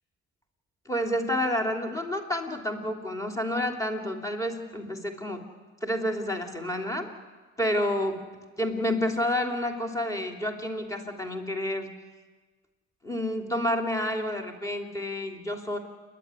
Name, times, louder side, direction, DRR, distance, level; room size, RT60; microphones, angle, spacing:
voice 1, 0.8-5.4 5.8-7.1 7.6-8.2 8.6-11.9 13.0-15.8, left 1 dB, 10° left, 4 dB, 3.3 m, -29 dB
29.0 x 11.5 x 9.8 m, 1.4 s
cardioid pair, 90°, 30 cm